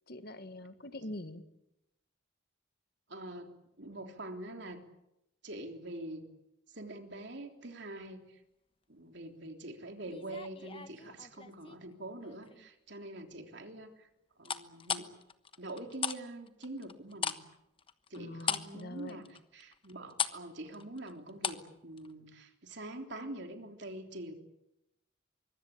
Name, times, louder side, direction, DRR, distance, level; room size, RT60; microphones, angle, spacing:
voice 1, 0.1-1.4 18.2-19.2, left 1 dB, 50° left, 10 dB, 1.7 m, -44 dB
voice 2, 3.1-4.8 5.4-6.3 6.7-8.4 8.9-14.1 14.4-15.1 15.6-17.4 18.1-24.3, right 1 dB, 60° right, 4 dB, 3.5 m, -45 dB
sound 1, 10.1-11.8 12.2-12.7 14.4-16.2 16.5-21.7 22.0-22.1, left 7 dB, 25° left, 1.1 m, -37 dB
24.5 x 23.5 x 8.6 m, 0.86 s
head